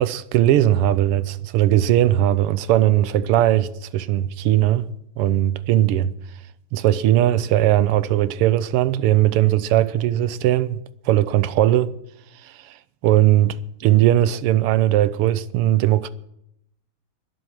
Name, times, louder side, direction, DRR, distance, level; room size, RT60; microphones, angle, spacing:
voice 1, 0.0-4.9 5.2-6.1 6.7-11.9 12.4-12.7 13.0-16.1, right 13 dB, 85° right, 1.7 m, -19 dB
22.0 x 8.1 x 6.0 m
omnidirectional pair, 2.4 m